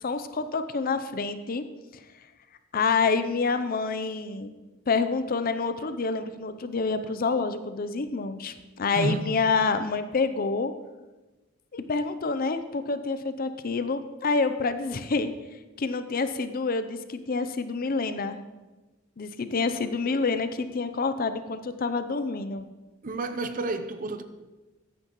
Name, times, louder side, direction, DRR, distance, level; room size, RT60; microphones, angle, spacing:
voice 1, 0.0-1.6 2.7-4.6 4.9-10.7 11.7-15.3 15.8-18.4 19.2-22.6, left 4 dB, 45° left, 0.6 m, -27 dB
voice 2, 8.9-9.3 23.0-24.2, right 2 dB, 45° right, 0.7 m, -30 dB
14.5 x 9.6 x 3.0 m
head